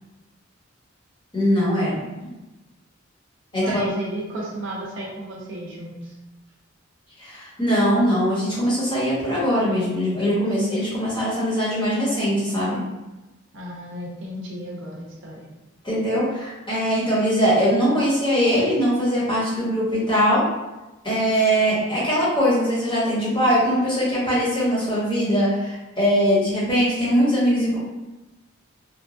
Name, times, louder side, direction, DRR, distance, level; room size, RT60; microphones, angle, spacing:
voice 1, 1.3-2.0 3.5-3.8 7.2-12.8 15.8-20.4 21.0-27.8, equal, 25° left, -9 dB, 1.1 m, -21 dB
voice 2, 3.5-6.1 13.5-15.4, right 1 dB, 65° right, -3 dB, 0.6 m, -34 dB
3.0 x 2.2 x 2.5 m, 1.1 s
head